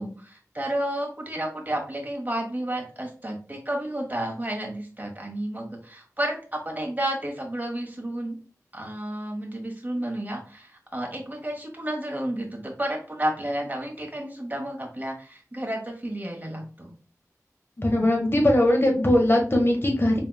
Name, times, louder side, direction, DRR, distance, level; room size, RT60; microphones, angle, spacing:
voice 1, 0.0-8.4 8.7-16.9, right 1 dB, 30° right, 0 dB, 1.4 m, -31 dB
voice 2, 17.8-20.2, left 1 dB, 40° left, 0 dB, 1.3 m, -20 dB
4.6 x 3.4 x 2.3 m, 0.38 s
wide cardioid pair, 40°, 6 cm